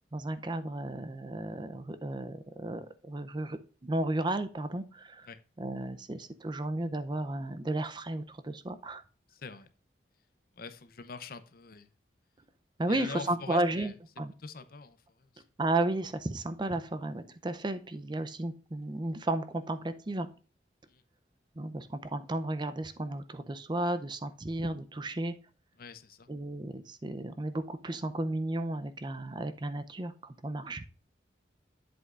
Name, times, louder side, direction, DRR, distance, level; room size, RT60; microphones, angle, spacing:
voice 1, 0.1-5.3 5.6-9.0 12.8-14.3 15.6-20.3 21.6-25.3 26.3-30.8, right 2 dB, 25° right, 11 dB, 0.5 m, -33 dB
voice 2, 9.3-9.7 10.6-11.9 12.9-13.9 14.4-15.4 20.9-21.0 25.8-26.3, left 4 dB, 50° left, 12 dB, 0.7 m, -44 dB
8.0 x 7.8 x 2.5 m, 0.37 s
head